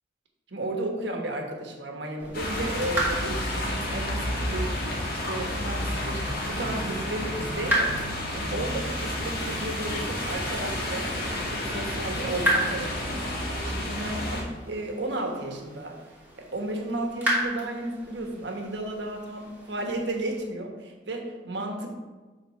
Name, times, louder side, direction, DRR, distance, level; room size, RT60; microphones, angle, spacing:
voice 1, 0.5-4.8 5.3-8.0 8.3-16.0 16.4-21.9, right 1 dB, 70° right, 2 dB, 1.3 m, -33 dB
sound 1, 2.2-20.4, right 1 dB, 10° right, 2.5 m, -35 dB
sound 2, 2.3-14.4, left 1 dB, 55° left, 1.6 m, -30 dB
7.1 x 3.8 x 5.8 m, 1.3 s
head